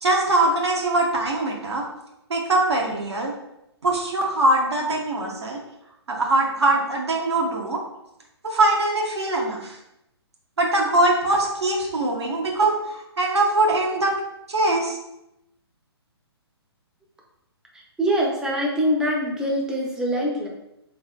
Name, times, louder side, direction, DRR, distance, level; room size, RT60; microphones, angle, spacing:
voice 1, 0.0-1.8 2.3-3.3 3.8-5.6 6.1-7.8 8.4-9.8 10.6-14.1 14.5-15.0, right 2 dB, 75° right, -1 dB, 0.8 m, -22 dB
voice 2, 17.7-20.5, equal, 5° right, -2 dB, 0.5 m, -24 dB
3.5 x 3.1 x 2.2 m, 0.87 s
figure-of-eight pair, 130°, 14 cm